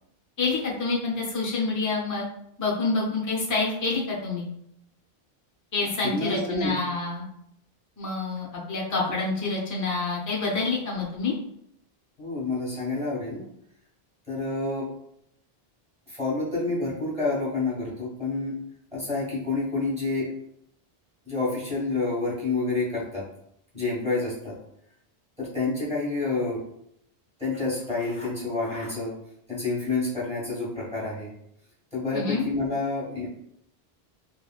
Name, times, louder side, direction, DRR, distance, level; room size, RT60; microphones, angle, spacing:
voice 1, 0.4-2.2 2.6-4.5 5.7-7.2 8.0-11.3 32.1-32.4, left 3 dB, 25° left, -4 dB, 0.5 m, -27 dB
voice 2, 5.8-6.8 12.2-13.4 14.3-14.9 16.1-18.6 18.9-20.3 21.2-23.2 23.7-24.5 25.4-26.6 27.4-29.1 29.5-31.3 31.9-33.4, left 3 dB, 5° right, -7 dB, 1.3 m, -28 dB
3.2 x 2.4 x 2.3 m, 0.74 s
omnidirectional pair, 1.0 m